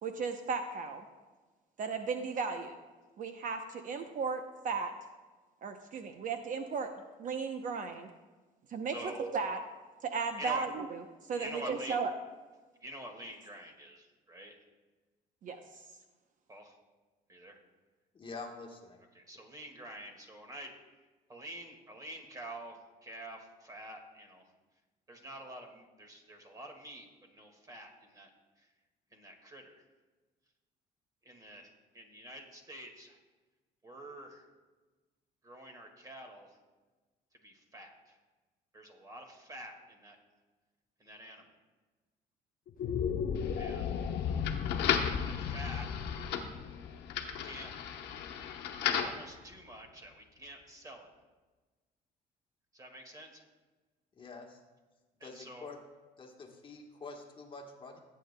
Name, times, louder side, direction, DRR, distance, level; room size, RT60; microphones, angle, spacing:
voice 1, 0.0-1.0 1.8-2.7 3.2-4.9 5.6-6.9 7.2-8.1 8.7-9.6 10.0-11.0 11.3-12.1 15.4-15.6, right 5 dB, 50° right, 7 dB, 0.7 m, -35 dB
voice 2, 8.9-9.3 10.4-10.7 11.3-12.0 12.8-14.6 16.5-16.8 17.3-17.6 19.1-20.7 21.3-24.5 25.1-28.3 28.6-28.7 29.1-29.8 31.2-33.2 33.8-34.4 35.4-36.6 37.4-38.2 38.7-40.2 41.0-41.5 43.6-44.0 45.2-46.1 47.3-48.1 48.8-51.1 52.7-53.5 55.2-55.7, right 1 dB, 20° right, 3 dB, 1.9 m, -47 dB
voice 3, 18.1-19.0 54.2-54.6 55.2-55.8 56.2-58.0, left 3 dB, 30° left, 2 dB, 1.3 m, -46 dB
sound 1, 42.7-49.1, left 7 dB, 55° left, 0.6 m, -36 dB
sound 2, 43.4-49.2, left 8 dB, 80° left, 1.0 m, -36 dB
18.0 x 8.4 x 2.2 m, 1.3 s
cardioid pair, 110°, 17 cm